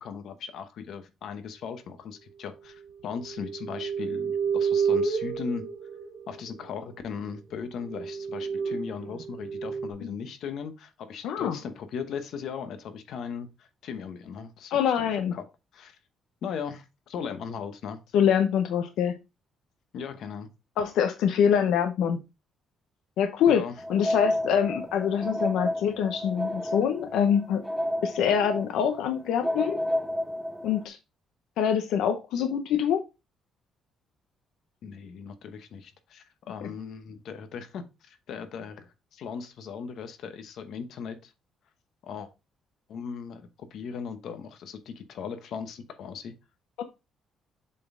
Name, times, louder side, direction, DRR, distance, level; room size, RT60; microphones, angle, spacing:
voice 1, 0.0-5.7 6.3-14.7 15.3-15.5 15.7-16.0 16.4-18.0 19.9-20.5 23.5-23.7 34.8-41.3 42.0-42.3 42.9-46.3, left 6 dB, 55° left, 0.9 m, -38 dB
sound 1, 3.1-6.8 7.3-7.4 7.8-9.9, right 6 dB, 75° right, 1.2 m, -30 dB
voice 2, 11.2-11.6 14.7-15.3 18.1-19.2 20.8-22.2 23.2-23.6 23.9-27.6 28.0-29.8 30.6-31.0 31.6-33.0 36.6-36.7 46.8-46.9, left 8 dB, 80° left, 0.7 m, -25 dB
sound 2, 23.8-30.9, left 1 dB, 5° right, 0.3 m, -31 dB
7.5 x 4.1 x 3.7 m
cardioid pair, 180°, 0 cm